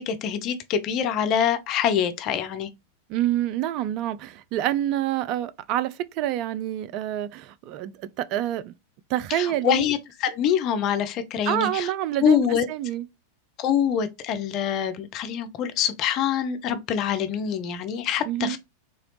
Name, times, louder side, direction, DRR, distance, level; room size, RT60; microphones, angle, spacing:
voice 1, 0.0-2.7 9.3-11.9 12.2-12.7 13.6-18.6, left 8 dB, 35° left, 0.5 m, -25 dB
voice 2, 3.1-8.7 9.1-9.9 11.5-13.1 18.3-18.6, right 13 dB, 40° right, 0.3 m, -27 dB
3.8 x 2.9 x 3.1 m
figure-of-eight pair, 90°, 0 cm